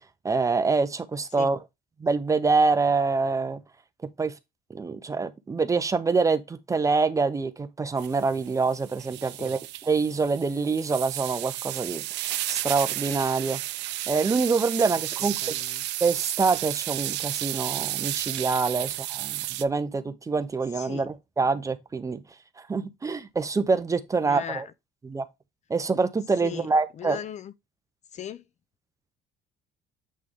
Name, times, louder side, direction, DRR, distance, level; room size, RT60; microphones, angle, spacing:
voice 1, 0.2-1.6 2.0-3.6 4.2-4.3 4.7-12.0 12.5-13.6 14.1-15.6 16.0-22.2 22.7-24.6 25.0-25.2 25.7-27.2, right 4 dB, 15° right, 0.6 m, -25 dB
sound 1, 8.0-19.6, right 16 dB, 70° right, 0.6 m, -32 dB
voice 2, 15.2-15.8 18.8-18.9 20.7-21.1 24.2-24.6 26.4-26.7 27.0-27.5 28.1-28.5, left 8 dB, 40° left, 0.5 m, -38 dB
8.4 x 3.2 x 3.6 m
cardioid pair, 145°, 19 cm